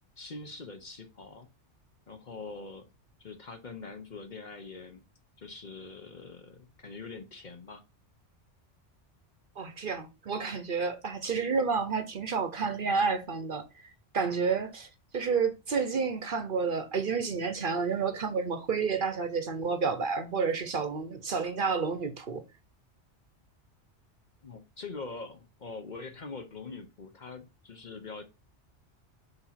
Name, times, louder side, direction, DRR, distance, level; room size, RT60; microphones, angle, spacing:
voice 1, 0.2-1.5 2.1-2.9 3.2-5.0 5.4-7.8 24.4-28.2, left 4 dB, 45° left, 0.9 m, -43 dB
voice 2, 9.6-13.7 14.1-14.9 15.1-22.4, right 5 dB, 50° right, 0.9 m, -30 dB
6.9 x 2.8 x 5.7 m
omnidirectional pair, 1.2 m